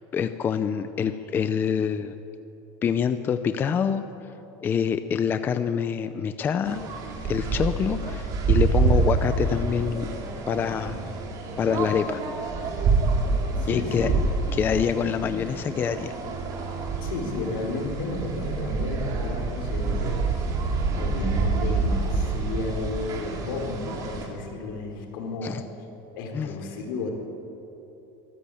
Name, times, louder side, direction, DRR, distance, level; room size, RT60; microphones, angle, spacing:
voice 1, 0.1-2.1 2.8-4.0 4.6-6.8 7.2-11.0 11.6-12.2 13.7-14.1 14.5-16.1 25.4-25.6 26.3-26.5, left 7 dB, 20° left, 10 dB, 0.5 m, -26 dB
sound 1, 6.6-24.3, right 4 dB, 30° right, 2.9 m, -27 dB
voice 2, 13.6-14.3 17.0-20.4 21.0-25.6 26.1-27.1, left 3 dB, 75° left, 3 dB, 4.1 m, -32 dB
23.5 x 14.0 x 8.6 m, 3.0 s
cardioid pair, 180°, 11 cm